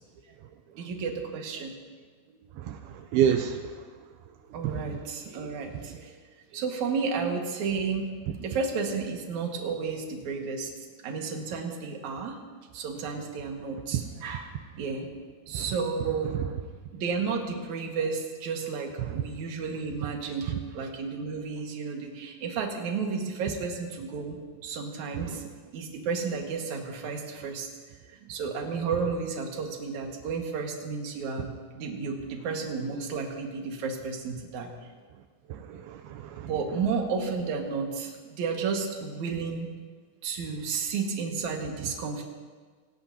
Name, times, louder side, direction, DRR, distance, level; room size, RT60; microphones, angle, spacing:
voice 1, 0.8-1.7 2.3-2.4 2.8-2.9 4.5-6.1 6.5-8.1 8.4-10.7 11.0-12.4 12.7-14.5 14.8-15.1 15.5-16.4 16.9-25.4 25.7-27.7 28.3-31.5 31.8-34.7 35.7-35.8 36.4-39.7 40.2-42.2, right 5 dB, 55° right, 2 dB, 2.7 m, -32 dB
voice 2, 2.6-3.8 4.6-5.0 15.5-15.7 16.4-16.5 19.0-19.2 25.1-25.4 35.5-36.5, right 9 dB, 80° right, 6 dB, 2.5 m, -29 dB
27.5 x 18.5 x 2.8 m, 1.5 s
omnidirectional pair, 4.7 m